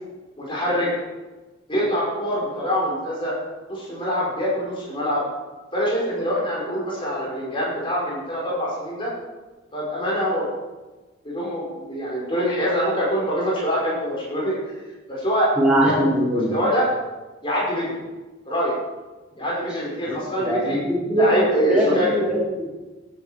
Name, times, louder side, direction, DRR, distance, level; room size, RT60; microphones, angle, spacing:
voice 1, 0.4-0.9 1.7-3.3 3.7-5.2 5.7-9.1 9.7-10.5 11.2-14.8 15.1-15.5 15.8-15.9 16.3-16.9 17.4-18.0 18.5-18.8 19.4-20.8 21.1-22.2, equal, 25° left, -5 dB, 5.3 m, -24 dB
voice 2, 15.6-16.5 20.1-21.3 21.7-22.7, equal, 5° right, -8 dB, 5.4 m, -21 dB
16.5 x 10.0 x 5.1 m, 1.2 s
head